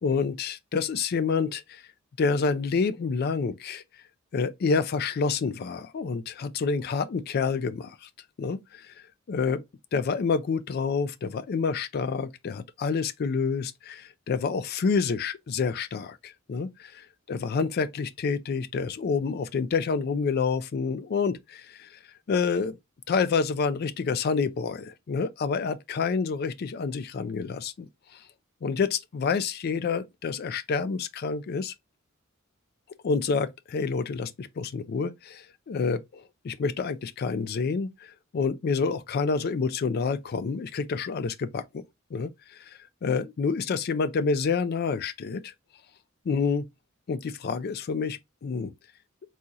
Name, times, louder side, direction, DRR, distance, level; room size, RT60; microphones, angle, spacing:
voice 1, 0.0-1.8 2.2-3.8 4.3-8.1 8.4-8.9 9.3-9.6 9.9-22.0 22.3-22.8 23.1-28.2 28.6-31.7 33.0-41.8 42.1-45.5 46.3-46.7 47.1-48.7, left 5 dB, 50° left, 0.3 m, -28 dB
4.0 x 2.8 x 2.4 m
head